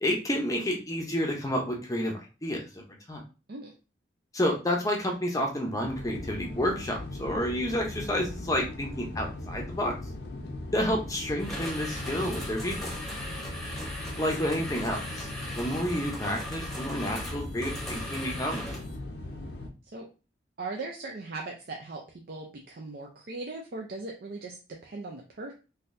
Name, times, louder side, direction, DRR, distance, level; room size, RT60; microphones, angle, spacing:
voice 1, 0.0-2.8 3.1-3.2 4.3-9.9 10.7-12.8 14.2-15.3 15.6-18.7, equal, 20° left, 1 dB, 0.6 m, -30 dB
sound 1, 5.8-19.7, left 2 dB, 65° left, 0.6 m, -39 dB
sound 2, 11.4-19.0, left 1 dB, ahead, 0.9 m, -39 dB
voice 2, 20.6-22.0 22.3-25.5, right 3 dB, 55° right, 0 dB, 0.5 m, -39 dB
3.9 x 2.7 x 2.5 m, 0.32 s
head